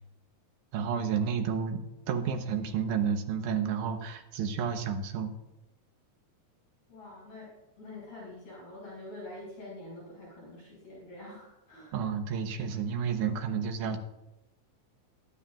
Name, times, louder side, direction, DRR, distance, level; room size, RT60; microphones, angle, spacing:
voice 1, 0.7-1.8 2.1-5.3 11.9-14.0, right 7 dB, 85° right, 6 dB, 2.5 m, -31 dB
voice 2, 6.9-11.9, left 2 dB, 65° left, -6 dB, 6.4 m, -46 dB
16.5 x 11.5 x 2.4 m, 0.95 s
omnidirectional pair, 3.5 m